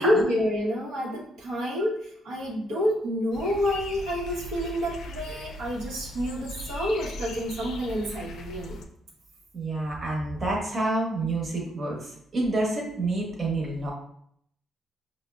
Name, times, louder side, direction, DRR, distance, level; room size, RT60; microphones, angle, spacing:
voice 1, 0.0-8.8, equal, 85° right, -5 dB, 0.8 m, -28 dB
sound 1, 3.3-8.8, left 1 dB, 70° left, 0.4 m, -39 dB
voice 2, 9.5-13.9, right 2 dB, 30° right, -3 dB, 1.0 m, -28 dB
4.8 x 2.0 x 2.2 m, 0.70 s
cardioid pair, 90°, 0 cm